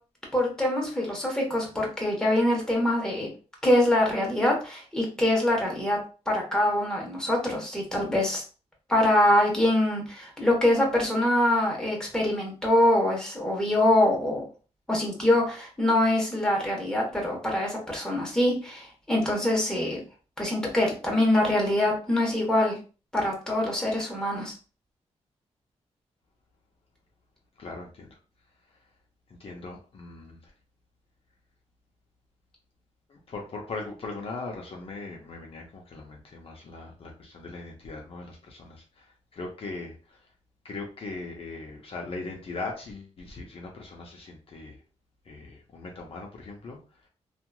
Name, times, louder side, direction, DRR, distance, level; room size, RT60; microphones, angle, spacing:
voice 1, 0.3-3.3 3.6-6.0 6.3-8.4 8.9-14.4 14.9-20.0 20.4-22.8 23.1-24.5, left 1 dB, 5° left, -1 dB, 1.1 m, -24 dB
voice 2, 27.6-28.1 29.4-30.4 33.1-39.1 39.3-40.2 40.6-44.8 45.3-46.8, left 3 dB, 50° left, 0 dB, 0.7 m, -39 dB
2.9 x 2.4 x 2.3 m, 0.35 s
cardioid pair, 85°, 12 cm